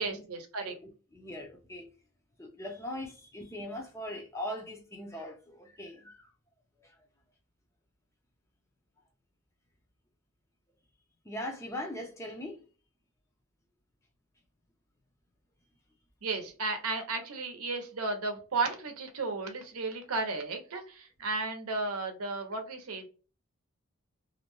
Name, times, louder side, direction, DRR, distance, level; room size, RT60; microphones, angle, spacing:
voice 1, 0.0-0.8 16.2-23.1, right 3 dB, 80° right, 0.7 m, -34 dB
voice 2, 0.6-1.9 2.4-6.3 11.3-12.6 20.7-20.8, left 1 dB, 15° left, 0.5 m, -40 dB
2.6 x 2.1 x 3.0 m
head